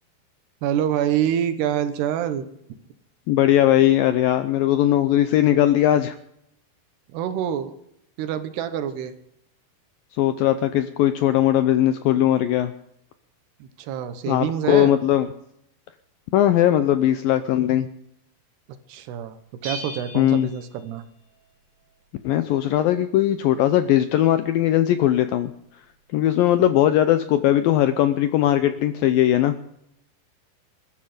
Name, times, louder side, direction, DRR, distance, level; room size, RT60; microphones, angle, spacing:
voice 1, 0.6-2.5 7.1-7.7 8.2-9.1 13.6-14.9 18.9-19.4 19.6-21.0, right 9 dB, 75° right, 11 dB, 3.1 m, -26 dB
voice 2, 3.3-6.2 10.2-12.7 14.3-15.3 16.3-17.9 20.2-20.5 22.2-25.5 26.1-29.5, left 12 dB, 85° left, 10 dB, 2.0 m, -19 dB
Bell, 19.6-21.5, right 1 dB, 50° right, 5.2 m, -38 dB
21.0 x 13.0 x 5.1 m, 0.76 s
omnidirectional pair, 5.0 m